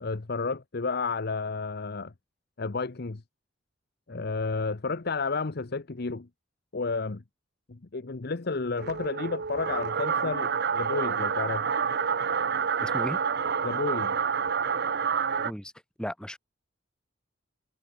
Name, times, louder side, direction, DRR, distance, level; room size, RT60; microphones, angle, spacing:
voice 1, 0.0-2.1 2.6-3.2 4.1-6.3 6.7-7.2 7.7-11.7 13.6-14.2, left 4 dB, 55° left, 0.9 m, -31 dB
sound 1, 8.8-15.5, right 6 dB, 60° right, 0.8 m, -28 dB
voice 2, 12.8-13.2 15.4-15.7 16.0-16.4, equal, 5° left, 1.2 m, -35 dB
head